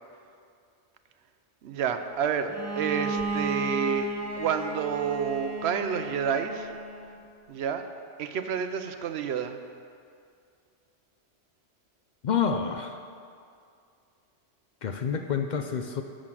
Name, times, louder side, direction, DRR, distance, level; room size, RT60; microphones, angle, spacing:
voice 1, 1.6-4.1 4.4-6.7 7.5-7.8 8.2-9.6, right 7 dB, 65° right, 8 dB, 0.8 m, -29 dB
Bowed string instrument, 2.5-7.2, right 2 dB, 20° right, 0.4 m, -34 dB
voice 2, 12.2-13.0 14.8-16.0, left 6 dB, 60° left, 5 dB, 0.5 m, -28 dB
7.1 x 6.3 x 7.4 m, 2.3 s
omnidirectional pair, 1.2 m